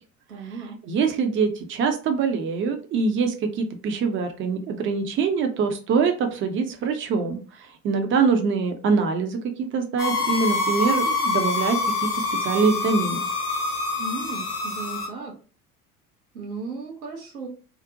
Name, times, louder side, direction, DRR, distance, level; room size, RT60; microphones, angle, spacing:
voice 1, 0.3-0.8 14.0-15.3 16.3-17.5, right 3 dB, 85° right, 0 dB, 0.8 m, -35 dB
voice 2, 0.8-11.8 12.4-13.3, right 5 dB, 30° right, 5 dB, 0.5 m, -24 dB
sound 1, 10.0-15.1, left 3 dB, 90° left, 0.7 m, -26 dB
2.6 x 2.1 x 2.6 m, 0.37 s
figure-of-eight pair, 70°, 43 cm